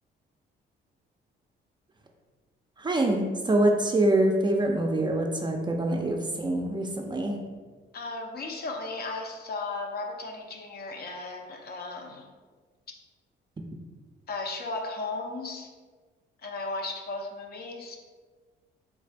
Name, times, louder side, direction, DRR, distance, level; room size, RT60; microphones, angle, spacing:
voice 1, 2.8-7.4, right 1 dB, 25° right, 2 dB, 0.4 m, -25 dB
voice 2, 7.9-12.3 14.3-15.7 16.4-18.0, left 3 dB, 50° left, 2 dB, 0.7 m, -35 dB
3.3 x 2.5 x 4.4 m, 1.4 s
cardioid pair, 90°, 20 cm